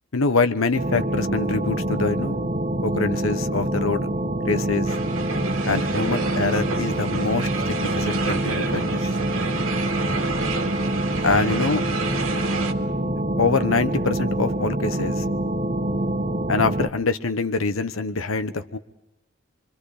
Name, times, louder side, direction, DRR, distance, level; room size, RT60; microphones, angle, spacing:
voice 1, 0.1-2.4 2.8-4.1 4.5-4.9 5.6-9.1 11.2-11.8 13.4-15.2 16.5-18.8, left 4 dB, 85° left, 10 dB, 1.2 m, -24 dB
sound 1, 0.7-16.9, right 1 dB, 40° right, 1.4 m, -25 dB
sound 2, 4.9-12.7, right 4 dB, 90° right, 2.4 m, -30 dB
25.5 x 25.0 x 5.0 m, 0.89 s
head